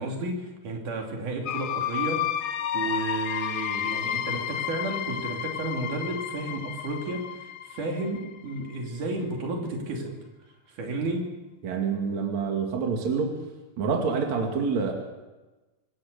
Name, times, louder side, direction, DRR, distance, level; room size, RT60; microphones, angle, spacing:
voice 1, 0.0-10.2 10.7-11.4, right 2 dB, 90° right, 1 dB, 4.4 m, -32 dB
sound 1, 1.4-9.0, left 10 dB, 65° left, 1.9 m, -31 dB
voice 2, 11.6-13.4 13.8-14.9, right 5 dB, 65° right, 2 dB, 3.6 m, -27 dB
25.5 x 15.0 x 6.8 m, 1.1 s
omnidirectional pair, 3.5 m